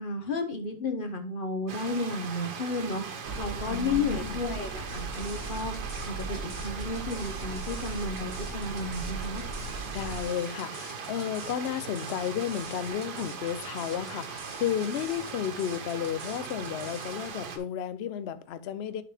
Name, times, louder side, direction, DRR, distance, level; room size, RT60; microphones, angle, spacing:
voice 1, 0.0-3.0 3.4-5.7 6.1-9.4, left 3 dB, 40° left, 1.0 m, -32 dB
Stream, 1.7-17.6, right 5 dB, 90° right, 1.6 m, -39 dB
sound 1, 3.3-10.2, right 3 dB, 70° right, 2.7 m, -38 dB
voice 2, 3.7-4.5 9.9-19.0, left 9 dB, 90° left, 0.5 m, -33 dB
sound 2, 4.9-17.3, right 2 dB, 25° right, 1.4 m, -48 dB
11.5 x 3.9 x 3.4 m
omnidirectional pair, 1.7 m